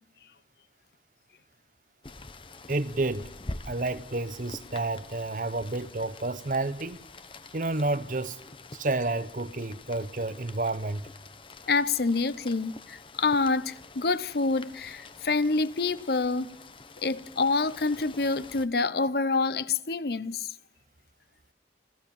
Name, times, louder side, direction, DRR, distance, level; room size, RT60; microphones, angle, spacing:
Rain, 2.0-18.7, left 3 dB, 30° left, 1.0 m, -46 dB
voice 1, 2.7-3.3 3.7-7.0 7.5-8.4 8.7-11.1, right 2 dB, 45° right, 0.8 m, -30 dB
voice 2, 11.7-16.5 17.0-20.5, left 3 dB, 60° left, 0.8 m, -27 dB
28.5 x 15.5 x 7.2 m
head